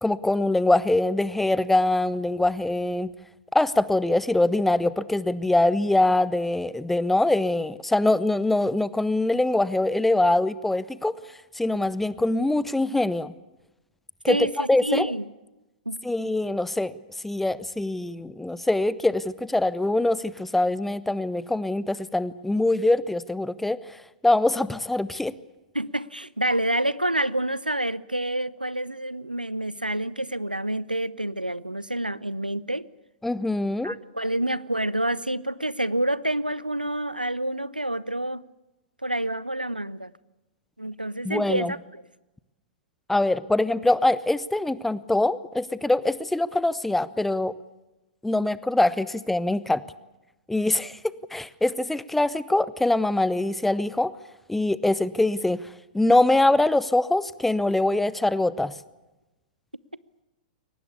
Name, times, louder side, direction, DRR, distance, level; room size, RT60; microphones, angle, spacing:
voice 1, 0.0-3.1 3.5-11.2 11.6-13.3 14.2-15.1 16.0-16.9 17.2-24.0 24.2-25.3 33.2-33.9 41.2-41.7 43.1-47.5 48.2-49.8 50.5-54.1 54.5-55.6 55.9-58.7, left 2 dB, 5° left, 19 dB, 0.7 m, -23 dB
voice 2, 14.3-15.3 15.9-16.0 25.7-32.9 33.8-38.4 39.0-40.1 40.8-42.0, right 1 dB, 90° right, 20 dB, 0.7 m, -28 dB
23.0 x 19.0 x 8.5 m, 1.0 s
figure-of-eight pair, 105°, 5 cm